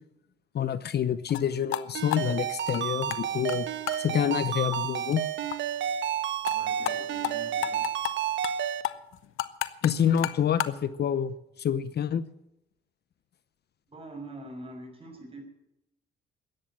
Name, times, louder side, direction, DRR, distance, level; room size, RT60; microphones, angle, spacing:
voice 1, 0.5-3.7 4.0-5.2 9.8-12.3, left 9 dB, 55° left, 15 dB, 0.8 m, -27 dB
sound 1, 1.3-1.4 1.7-1.8 2.1-3.2 3.5-3.6 3.9-4.0 4.3-4.4 4.7-4.8 5.1-5.2 5.5-5.6 5.8-5.9 6.2-6.6 6.9-7.0 7.2-7.3 7.6-8.1 8.4-8.6 8.8-10.8, left 14 dB, 90° left, 0.9 m, -32 dB
Ringtone, 1.9-8.8, right 9 dB, 65° right, 1.4 m, -31 dB
voice 2, 6.4-7.9 13.9-15.4, right 1 dB, 30° right, 3 dB, 6.0 m, -44 dB
14.0 x 9.9 x 8.7 m, 0.84 s
cardioid pair, 90°, 20 cm